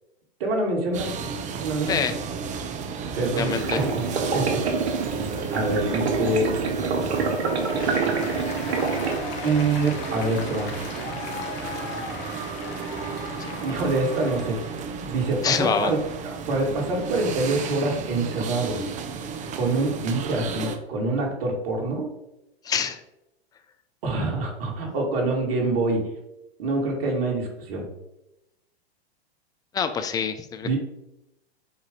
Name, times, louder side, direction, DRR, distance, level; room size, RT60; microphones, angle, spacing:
voice 1, 0.4-1.1 1.6-2.1 3.2-4.1 4.3-4.6 5.5-6.6 9.4-10.7 13.4-14.6 14.9-16.0 16.2-18.8 19.5-22.1 24.0-26.0 26.6-27.9 30.6-30.8, right 2 dB, 65° right, 0 dB, 2.4 m, -25 dB
sound 1, 0.9-20.8, right 5 dB, 25° right, 0.7 m, -33 dB
voice 2, 3.4-3.8 13.4-13.5 15.4-15.9 22.6-23.0 29.7-30.8, left 7 dB, 10° left, 9 dB, 0.4 m, -26 dB
sound 2, 3.5-9.2, right 4 dB, 85° right, 1.6 m, -26 dB
Applause, 7.3-14.9, left 5 dB, 45° left, 1.6 m, -38 dB
8.1 x 2.7 x 5.2 m, 0.89 s
hypercardioid pair, 120°, 32 cm